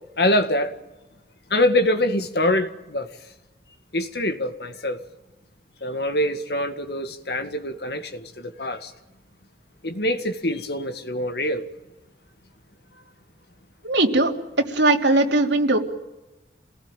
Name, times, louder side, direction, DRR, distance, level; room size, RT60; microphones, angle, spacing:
voice 1, 0.2-0.7 1.5-3.1 3.9-5.0 5.8-8.9 9.8-11.7, left 1 dB, 60° left, 8 dB, 1.9 m, -24 dB
voice 2, 13.8-14.3 14.7-15.8, right 2 dB, 80° right, 1 dB, 3.3 m, -19 dB
27.5 x 19.0 x 9.1 m, 1.0 s
head